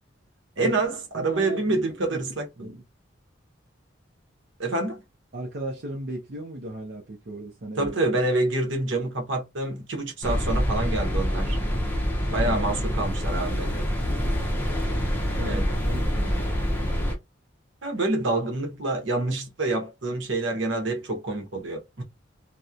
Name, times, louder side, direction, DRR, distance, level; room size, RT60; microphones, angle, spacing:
voice 1, 0.6-2.7 4.6-5.0 7.8-11.6 12.3-13.8 15.4-15.7 17.8-22.0, right 2 dB, 70° right, 0.9 m, -27 dB
voice 2, 1.1-2.2 2.6-2.8 5.3-8.0 12.3-12.6 15.2-16.5, right 1 dB, 50° right, 0.6 m, -37 dB
sound 1, 10.2-17.1, equal, 10° left, 0.5 m, -26 dB
2.9 x 2.0 x 2.4 m
head